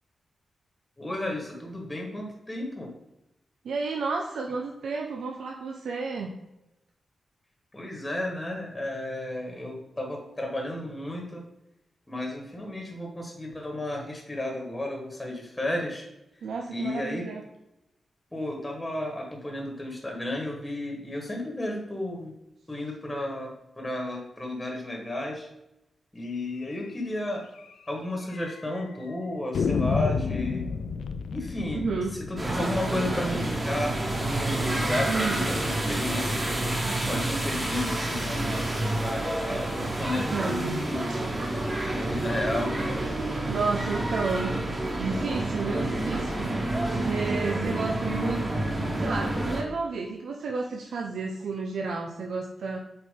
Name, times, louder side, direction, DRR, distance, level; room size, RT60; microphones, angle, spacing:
voice 1, 1.0-2.9 7.7-11.4 12.1-16.0 16.7-17.3 18.3-22.4 22.7-25.5 26.1-27.4 27.9-30.7 31.3-36.8 37.0-38.4 38.9-41.3 41.9-42.7, left 1 dB, 15° left, 0 dB, 1.4 m, -33 dB
voice 2, 3.6-6.3 16.4-17.4 31.7-32.2 35.1-35.5 38.4-38.5 40.3-40.8 41.1-41.2 43.5-44.6 45.0-46.6 47.0-48.5 49.0-52.8, right 4 dB, 90° right, 1 dB, 0.7 m, -31 dB
sound 1, 26.7-26.9 27.2-27.3 27.6-27.7 28.3-28.8 29.5-34.3, left 5 dB, 85° left, 0.5 m, -31 dB
sound 2, 32.4-49.6, right 1 dB, 25° right, 1.9 m, -29 dB
7.7 x 4.4 x 3.7 m, 0.89 s
wide cardioid pair, 115°, 0 cm